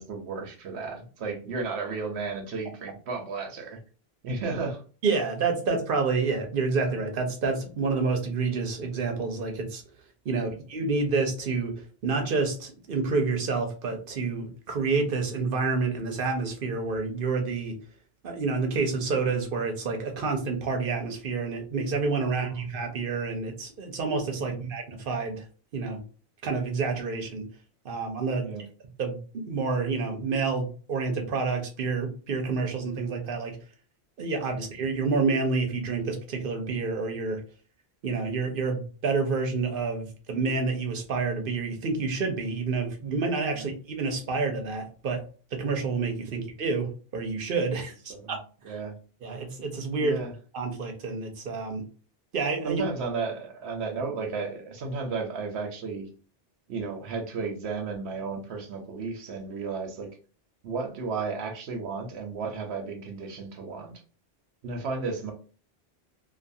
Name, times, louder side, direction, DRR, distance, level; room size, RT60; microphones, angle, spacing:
voice 1, 0.0-3.8 4.2-4.8 10.3-10.6 22.3-22.5 24.4-24.6 28.4-28.6 34.5-34.6 43.5-43.6 46.3-46.4 48.1-48.4 48.6-48.9 50.0-50.3 52.6-56.1 56.7-60.1 60.6-63.9 64.6-65.3, right 4 dB, 85° right, 3 dB, 1.0 m, -33 dB
voice 2, 5.0-9.8 10.2-11.7 12.0-17.7 18.2-25.4 25.7-26.0 26.4-27.5 27.8-28.4 29.0-33.6 34.2-37.4 38.0-45.2 45.5-48.4 48.7-48.8 49.2-50.2 50.5-51.8 52.3-52.8, right 4 dB, 60° right, 3 dB, 0.8 m, -28 dB
2.5 x 2.4 x 2.6 m, 0.38 s
omnidirectional pair, 1.1 m